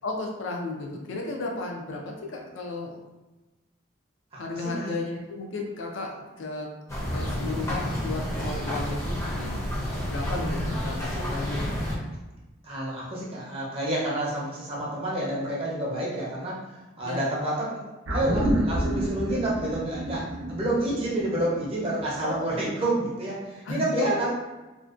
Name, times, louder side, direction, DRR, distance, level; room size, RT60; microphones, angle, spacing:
voice 1, 0.0-3.0 4.4-6.7 7.1-11.7 17.0-17.3 22.2-22.5 23.6-24.3, left 2 dB, 75° left, 1 dB, 0.4 m, -34 dB
voice 2, 4.3-5.0 12.6-16.6 17.0-17.8 18.1-24.3, right 1 dB, 30° right, -5 dB, 0.5 m, -29 dB
sound 1, 6.9-12.0, equal, 15° left, 0.5 m, -30 dB
sound 2, 18.1-22.7 23.0-23.1, right 1 dB, 90° right, 0.6 m, -29 dB
2.5 x 2.1 x 2.4 m, 1.1 s
head